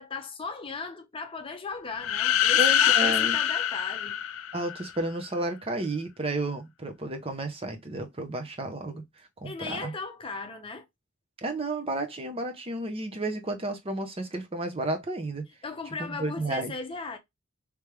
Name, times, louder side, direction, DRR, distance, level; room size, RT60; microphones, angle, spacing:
voice 1, 0.0-4.2 9.4-10.8 15.6-17.2, left 4 dB, 25° left, 0.7 m, -37 dB
sound 1, 2.0-4.9, left 10 dB, 65° left, 0.4 m, -24 dB
voice 2, 2.6-3.4 4.5-9.0 9.4-9.9 11.4-15.4 16.0-16.7, right 2 dB, 25° right, 0.8 m, -32 dB
3.3 x 3.3 x 3.1 m
head